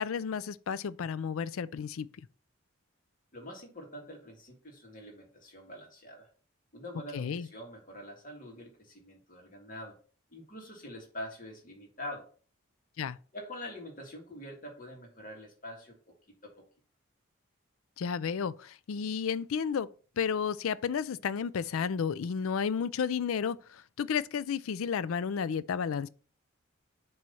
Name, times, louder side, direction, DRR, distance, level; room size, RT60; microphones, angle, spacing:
voice 1, 0.0-2.1 7.1-7.5 13.0-13.2 18.0-19.9 20.2-26.1, left 6 dB, 75° left, 0.4 m, -32 dB
voice 2, 3.3-6.3 6.7-10.0 10.3-12.3 13.3-16.2 16.4-16.6, left 1 dB, 40° left, 2.0 m, -45 dB
7.5 x 3.1 x 5.5 m
head